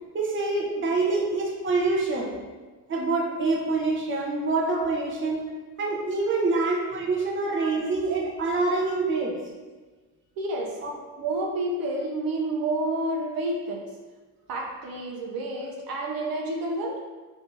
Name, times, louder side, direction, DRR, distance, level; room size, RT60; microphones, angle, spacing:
voice 1, 0.1-2.3 2.9-5.4 5.8-9.3 10.8-10.9, right 3 dB, 35° right, -2 dB, 0.9 m, -26 dB
voice 2, 10.4-10.7 11.2-13.8 14.5-17.0, right 2 dB, 75° right, -1 dB, 0.7 m, -30 dB
3.5 x 2.7 x 4.5 m, 1.3 s
cardioid pair, 130°, 35 cm